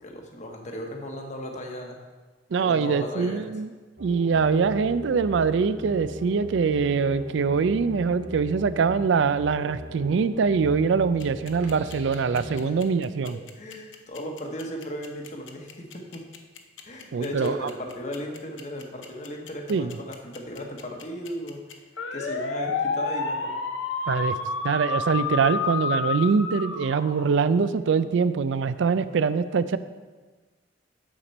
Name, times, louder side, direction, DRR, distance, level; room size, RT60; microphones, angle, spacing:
voice 1, 0.0-2.0 2.6-3.4 12.6-12.7 13.3-16.2 16.8-21.6 22.1-23.5, equal, 40° left, 2 dB, 1.1 m, -36 dB
voice 2, 2.5-3.7 4.0-13.4 17.1-17.7 19.7-19.9 24.1-24.4 24.6-29.8, right 5 dB, 65° right, 14 dB, 0.4 m, -23 dB
sound 1, 4.0-12.6, equal, 85° right, 1.5 m, -38 dB
sound 2, 11.2-27.7, left 4 dB, 70° left, 0.7 m, -30 dB
8.8 x 6.8 x 4.1 m, 1.3 s
head